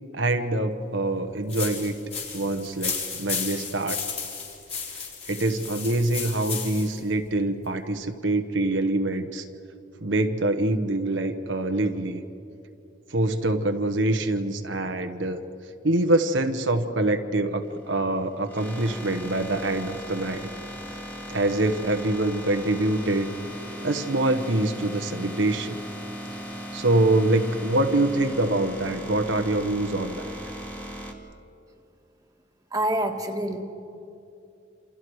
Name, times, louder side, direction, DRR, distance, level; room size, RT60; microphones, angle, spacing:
voice 1, 0.1-1.9 2.3-4.0 5.3-9.5 10.0-12.2 13.1-15.4 15.8-20.5 21.3-23.3 23.8-25.8 26.7-30.3, right 2 dB, 75° right, 7 dB, 1.2 m, -25 dB
sound 1, 1.5-7.0, left 6 dB, 35° left, 4.2 m, -33 dB
sound 2, 17.6-31.1, equal, 10° left, 1.9 m, -38 dB
voice 2, 32.7-33.6, right 1 dB, 20° right, 3 dB, 1.7 m, -26 dB
28.0 x 27.5 x 4.8 m, 2.7 s
head